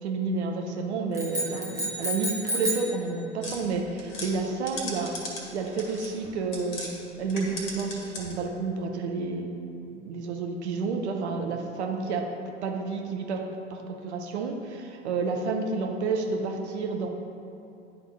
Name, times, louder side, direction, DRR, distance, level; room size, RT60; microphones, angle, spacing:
voice 1, 0.0-5.1 5.5-6.9 7.2-9.5 9.9-12.3 12.6-13.4 13.7-17.1, right 4 dB, 70° right, 2 dB, 0.9 m, -30 dB
sound 1, 1.1-3.0, equal, 10° right, 1.1 m, -30 dB
sound 2, 3.4-6.9 7.2-8.5, left 2 dB, 35° left, 1.7 m, -38 dB
10.0 x 3.7 x 4.7 m, 2.7 s
figure-of-eight pair, 80°, 35 cm